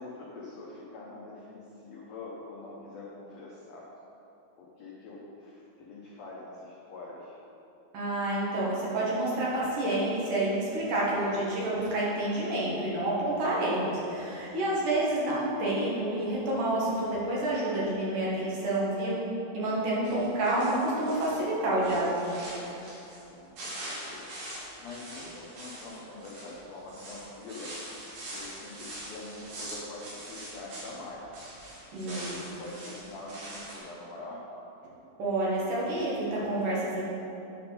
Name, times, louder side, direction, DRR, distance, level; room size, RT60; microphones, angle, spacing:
voice 1, 0.0-3.9 4.6-7.4 14.7-14.8 23.1-27.7 28.3-31.4 32.0-34.4, left 2 dB, 85° left, -5 dB, 1.5 m, -44 dB
voice 2, 7.9-19.2 19.5-22.3 31.9-32.4 35.2-37.0, right 1 dB, 60° right, -6 dB, 2.8 m, -29 dB
sound 1, 20.0-21.4 21.8-23.3 23.6-31.0 31.3-33.8, right 1 dB, 85° right, 4.3 m, -43 dB
9.9 x 4.5 x 5.5 m, 2.9 s
omnidirectional pair, 4.5 m